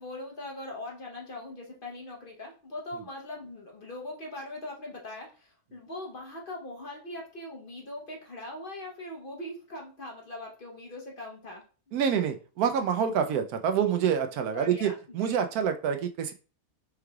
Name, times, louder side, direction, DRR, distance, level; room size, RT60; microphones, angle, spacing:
voice 1, 0.0-11.6 14.5-15.5, left 1 dB, 45° left, -1 dB, 0.9 m, -41 dB
voice 2, 11.9-16.3, right 7 dB, 90° right, 7 dB, 1.1 m, -27 dB
4.6 x 3.2 x 2.3 m, 0.36 s
omnidirectional pair, 1.5 m